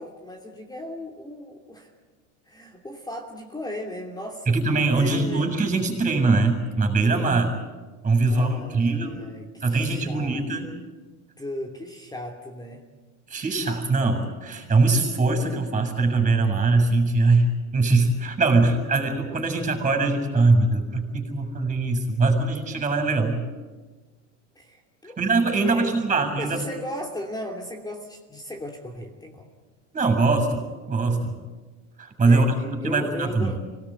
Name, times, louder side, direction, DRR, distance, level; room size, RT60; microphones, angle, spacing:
voice 1, 0.0-1.9 2.5-4.6 5.0-5.5 8.2-10.4 11.4-12.9 14.6-14.7 24.6-25.2 25.6-25.9 26.4-29.5 32.2-32.5 32.8-33.6, left 1 dB, 10° left, 2 dB, 3.0 m, -36 dB
voice 2, 4.5-7.5 8.0-9.2 9.6-10.7 13.3-23.4 25.2-26.6 29.9-31.4 32.0-33.6, right 3 dB, 20° right, 6 dB, 7.1 m, -22 dB
25.0 x 18.5 x 9.3 m, 1.3 s
supercardioid pair, 110°, 37 cm